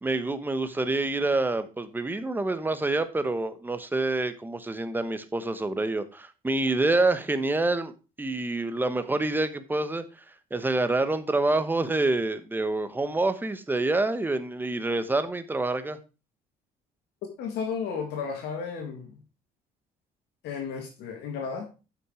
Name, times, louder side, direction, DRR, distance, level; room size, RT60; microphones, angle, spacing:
voice 1, 0.0-7.9 8.2-10.0 10.5-16.0, right 2 dB, 10° right, 11 dB, 1.0 m, -27 dB
voice 2, 17.4-19.2 20.4-21.7, left 6 dB, 80° left, 2 dB, 2.0 m, -33 dB
8.0 x 6.0 x 4.8 m, 0.32 s
cardioid pair, 110°, 17 cm